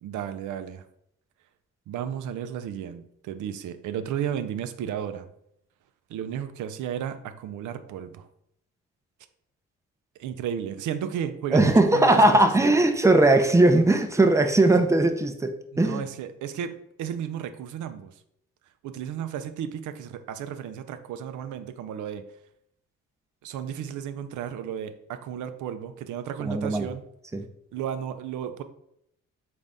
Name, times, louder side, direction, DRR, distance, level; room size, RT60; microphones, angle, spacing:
voice 1, 0.0-0.8 1.9-5.3 6.1-8.3 10.2-12.7 15.8-18.1 18.8-22.3 23.4-27.0 27.7-28.6, right 9 dB, 75° right, 10 dB, 0.5 m, -33 dB
voice 2, 11.5-16.0 26.4-26.9 27.3-27.4, right 2 dB, 10° right, 6 dB, 0.5 m, -19 dB
3.9 x 2.6 x 3.4 m, 0.74 s
supercardioid pair, 60°, 31 cm